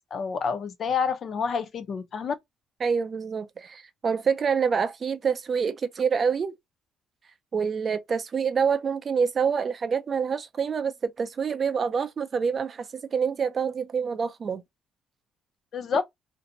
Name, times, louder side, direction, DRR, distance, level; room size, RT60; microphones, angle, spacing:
voice 1, 0.0-2.3 15.7-16.0, left 6 dB, 50° left, 0.5 m, -28 dB
voice 2, 2.8-6.5 7.5-14.6, right 6 dB, 40° right, 0.4 m, -26 dB
2.5 x 2.1 x 2.6 m
cardioid pair, 120°, 0 cm